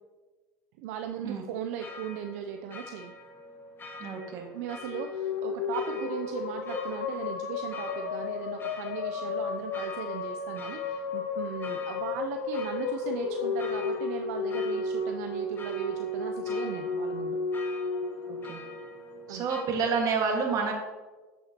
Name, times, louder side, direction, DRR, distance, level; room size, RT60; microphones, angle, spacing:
voice 1, 0.8-3.1 4.5-17.4 19.3-19.5, right 9 dB, 65° right, 6 dB, 0.5 m, -38 dB
sound 1, 1.8-19.6, left 2 dB, 25° left, 1.3 m, -46 dB
voice 2, 4.0-4.5 18.3-18.6 19.3-20.7, right 5 dB, 45° right, 2 dB, 1.8 m, -29 dB
sound 2, 4.7-19.2, left 4 dB, 75° left, 0.7 m, -33 dB
8.0 x 7.6 x 2.9 m, 1.3 s
hypercardioid pair, 85°, 8 cm